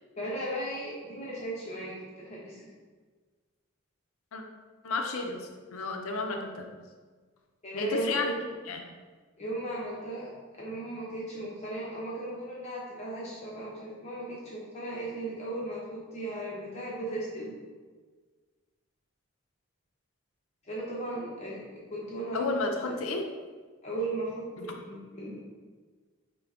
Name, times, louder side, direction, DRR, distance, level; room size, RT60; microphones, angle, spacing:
voice 1, 0.2-2.7 7.6-8.4 9.4-10.3 10.6-17.5 20.7-21.6 21.9-23.0 23.8-25.4, right 1 dB, 30° left, -5 dB, 0.7 m, -36 dB
voice 2, 4.8-6.7 7.7-8.3 8.7-8.8 22.3-23.3 24.6-24.7, left 3 dB, 85° left, 3 dB, 0.5 m, -32 dB
5.7 x 2.2 x 3.6 m, 1.4 s
head